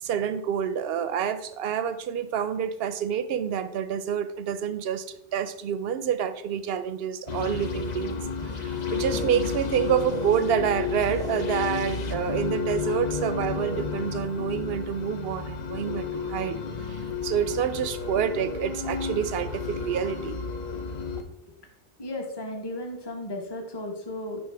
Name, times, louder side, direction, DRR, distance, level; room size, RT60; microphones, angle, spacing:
voice 1, 0.0-5.1 5.3-8.2 8.5-16.6 16.9-20.3, right 8 dB, 65° right, 13 dB, 0.7 m, -28 dB
sound 1, 7.3-21.2, left 5 dB, 45° left, 0.7 m, -31 dB
voice 2, 22.0-24.5, left 1 dB, 20° left, 2 dB, 1.0 m, -34 dB
11.0 x 3.7 x 3.4 m, 0.76 s
omnidirectional pair, 1.2 m